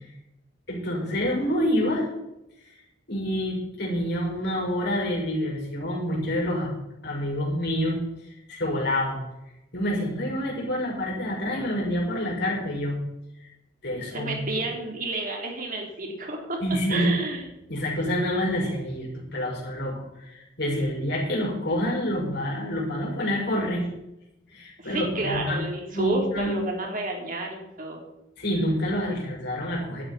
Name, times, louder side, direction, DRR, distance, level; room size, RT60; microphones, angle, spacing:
voice 1, 0.7-2.1 3.1-6.7 7.0-8.0 8.5-9.2 9.7-13.0 13.8-14.4 16.6-17.1 17.7-23.8 24.5-25.6 25.9-26.6 28.4-30.0, equal, 60° left, -2 dB, 6.1 m, -27 dB
voice 2, 14.1-16.6 16.9-17.5 24.8-28.0, right 2 dB, 45° right, 0 dB, 3.6 m, -30 dB
16.5 x 12.0 x 4.4 m, 0.90 s
head